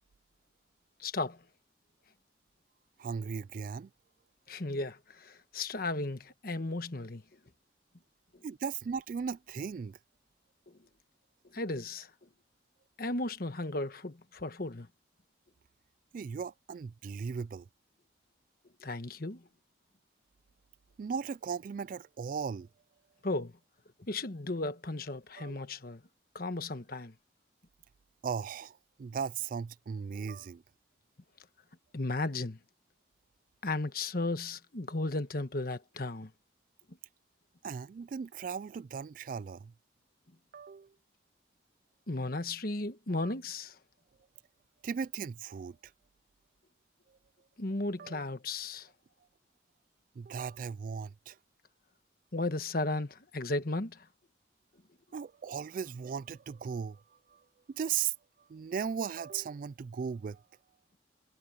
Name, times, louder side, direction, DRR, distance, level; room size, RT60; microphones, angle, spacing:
voice 1, 1.0-1.4 4.5-7.2 10.7-10.8 11.5-12.3 13.0-14.9 18.8-19.4 23.2-23.5 24.1-26.0 26.3-27.1 31.9-32.6 33.6-36.3 42.1-43.8 47.6-48.9 52.3-54.1, left 2 dB, 55° left, 1.3 m, -35 dB
voice 2, 3.0-3.9 8.4-10.0 16.1-17.7 21.0-22.7 25.4-25.6 28.2-30.6 37.6-39.7 40.5-40.9 43.2-43.3 44.8-45.9 48.0-48.2 50.2-51.4 55.1-57.0 57.3-57.4 57.7-58.1 58.5-60.4, right 6 dB, 50° right, 0.3 m, -37 dB
head